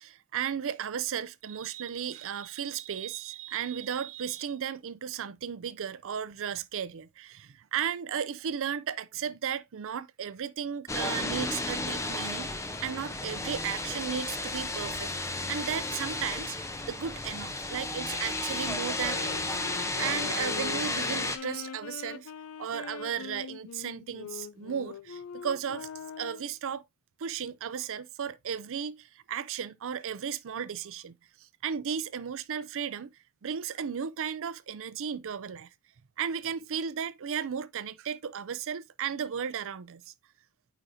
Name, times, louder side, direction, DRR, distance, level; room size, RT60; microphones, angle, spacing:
voice 1, 0.0-12.5 12.8-16.6 16.9-22.3 22.6-25.9 26.2-26.8 27.2-31.2 31.6-33.1 33.4-35.7 36.2-40.1, right 8 dB, 60° right, 0.5 m, -35 dB
sound 1, 10.9-21.4, left 2 dB, 15° left, 0.7 m, -33 dB
sound 2, 19.0-26.6, left 7 dB, 70° left, 0.5 m, -42 dB
8.9 x 5.2 x 2.7 m
head